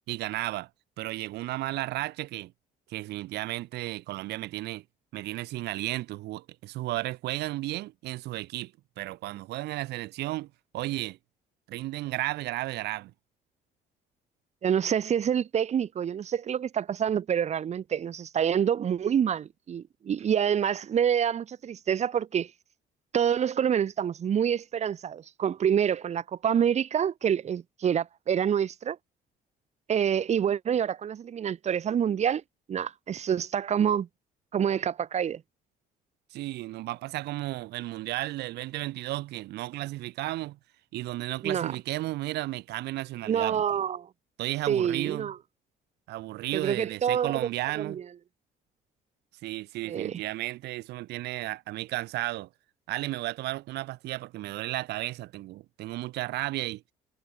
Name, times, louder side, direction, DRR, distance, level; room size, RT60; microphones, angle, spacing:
voice 1, 0.1-0.7 1.0-2.5 2.9-4.8 5.1-8.7 9.0-11.2 11.7-13.1 36.3-40.6 40.9-43.6 44.4-45.3 46.1-48.0 49.4-52.5 52.9-56.8, right 17 dB, 80° right, 1.9 m, -33 dB
voice 2, 14.6-22.5 23.1-29.0 29.9-32.4 32.7-34.1 34.5-35.4 41.4-41.7 43.3-44.1 44.7-45.3 46.5-47.5 47.8-48.0 49.8-50.2, right 8 dB, 40° right, 1.1 m, -27 dB
cardioid pair, 110°, 17 cm